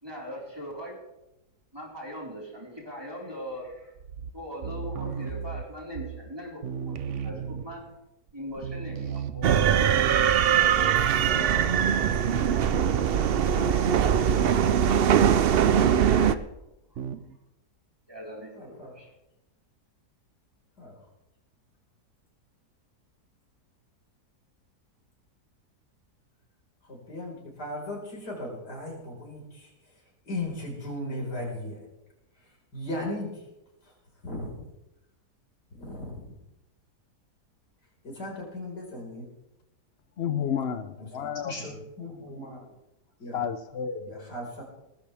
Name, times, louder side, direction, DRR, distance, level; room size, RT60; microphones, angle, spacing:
voice 1, 0.0-1.0 1.7-3.9 4.3-8.0 8.3-10.1 11.2-15.1 15.9-16.4 16.9-17.0 18.1-19.1, equal, 15° right, 4.5 m, -40 dB
sound 1, 4.0-6.4 6.6-7.9 8.3-8.4 8.6-12.7 13.0-13.3 14.6-14.9 15.6-16.0 17.0-17.4, right 7 dB, 55° right, 0.9 m, -36 dB
sound 2, 9.4-16.3, right 9 dB, 75° right, 0.5 m, -22 dB
voice 2, 18.5-18.9 20.8-21.0 26.8-29.7 30.3-31.9 32.7-33.4 33.8-33.9 34.2-34.5 35.7-36.4 38.0-39.3 41.0-42.7 43.2-43.4 44.1-44.6, left 1 dB, 75° left, 5.3 m, -37 dB
voice 3, 40.2-41.5 43.3-44.2, left 8 dB, 55° left, 0.7 m, -31 dB
19.0 x 15.0 x 3.4 m
omnidirectional pair, 1.7 m